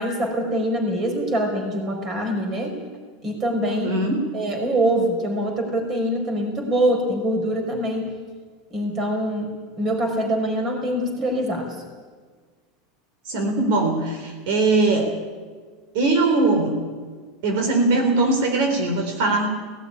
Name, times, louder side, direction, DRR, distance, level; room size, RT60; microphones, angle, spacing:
voice 1, 0.0-2.8 3.2-4.0 4.3-8.1 8.7-11.8, right 1 dB, 30° right, 4 dB, 5.3 m, -24 dB
voice 2, 3.7-4.2 13.3-15.2 15.9-16.8 17.4-19.5, right 2 dB, 70° right, 4 dB, 3.8 m, -21 dB
18.0 x 15.0 x 9.9 m, 1.5 s
supercardioid pair, 145°, 0 cm